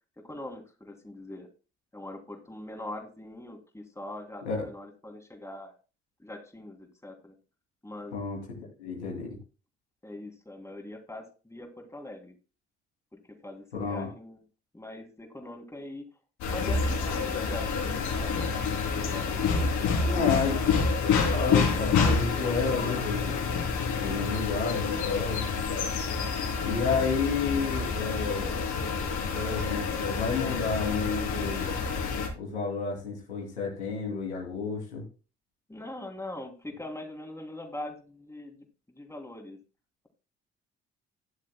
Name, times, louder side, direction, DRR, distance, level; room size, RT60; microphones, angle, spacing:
voice 1, 0.2-1.5 1.9-5.7 6.2-7.3 7.8-8.2 10.0-12.3 13.1-14.4 14.7-16.0 16.5-20.2 35.7-38.6 38.9-39.6, left 1 dB, 10° left, 3 dB, 2.9 m, -42 dB
voice 2, 8.8-9.4 13.7-14.1 20.0-20.6 21.3-23.4 23.9-25.5 26.6-28.6 29.3-31.8 32.3-35.0, left 5 dB, 85° left, -1 dB, 2.9 m, -31 dB
sound 1, 16.4-32.3, left 5 dB, 65° left, 3.2 m, -28 dB
14.5 x 10.5 x 2.2 m, 0.34 s
figure-of-eight pair, 45°, 33 cm